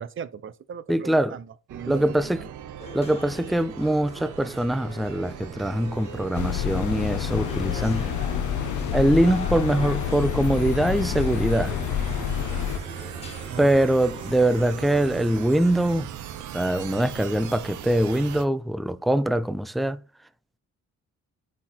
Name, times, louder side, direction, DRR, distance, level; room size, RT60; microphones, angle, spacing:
voice 1, 0.0-2.5 13.5-13.7, right 7 dB, 40° right, 0.7 m, -38 dB
voice 2, 0.9-1.4 1.9-2.4 2.9-8.1 8.9-11.8 13.6-16.1 16.5-20.0, right 1 dB, ahead, 0.4 m, -23 dB
evolving sparkle, 1.7-18.4, right 10 dB, 75° right, 0.8 m, -38 dB
sound 1, 2.8-15.1, left 2 dB, 20° left, 1.9 m, -43 dB
sound 2, 6.3-12.8, left 11 dB, 75° left, 0.8 m, -28 dB
9.5 x 4.4 x 4.3 m
cardioid pair, 90°, 30 cm